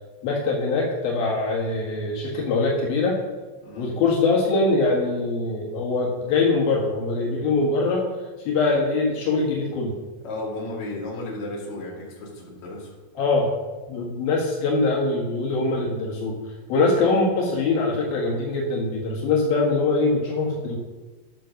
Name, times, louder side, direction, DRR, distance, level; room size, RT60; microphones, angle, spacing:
voice 1, 0.2-3.2 3.8-8.0 8.5-10.0 13.2-13.5 13.9-16.4 16.7-20.8, left 3 dB, 80° left, -3 dB, 3.5 m, -23 dB
voice 2, 3.6-3.9 10.2-12.9, left 2 dB, 50° left, -4 dB, 3.6 m, -34 dB
12.5 x 5.9 x 6.5 m, 1.2 s
omnidirectional pair, 4.2 m